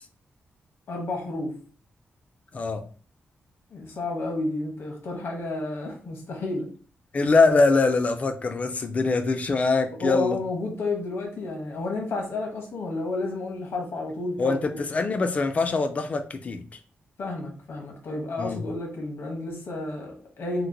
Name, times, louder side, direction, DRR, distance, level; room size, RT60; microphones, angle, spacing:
voice 1, 0.9-1.5 3.7-6.7 9.9-14.8 17.2-20.7, left 2 dB, 70° left, 1 dB, 1.0 m, -31 dB
voice 2, 2.5-2.8 7.1-10.4 14.4-16.6 18.4-18.6, left 3 dB, 35° left, 7 dB, 0.4 m, -23 dB
2.9 x 2.1 x 3.7 m, 0.40 s
wide cardioid pair, 155°, 4 cm